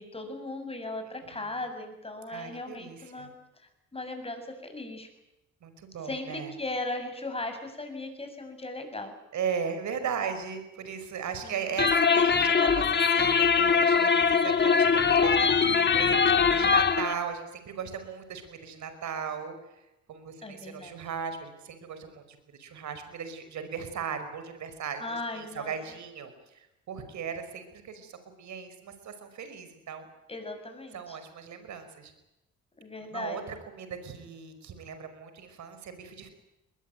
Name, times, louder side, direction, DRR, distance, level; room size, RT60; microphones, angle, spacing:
voice 1, 0.0-3.3 3.9-5.1 6.0-9.1 11.4-11.6 16.6-16.8 20.4-21.0 25.0-25.7 30.3-31.2 32.8-33.5, left 2 dB, 20° left, 6 dB, 7.2 m, -37 dB
voice 2, 2.3-3.3 5.6-6.5 9.3-19.6 20.1-30.1 30.9-32.1 33.1-36.3, right 7 dB, 70° right, 9 dB, 5.3 m, -37 dB
sound 1, 11.8-17.1, left 5 dB, 35° left, 2.0 m, -22 dB
21.5 x 21.0 x 9.2 m, 0.93 s
cardioid pair, 90°, 30 cm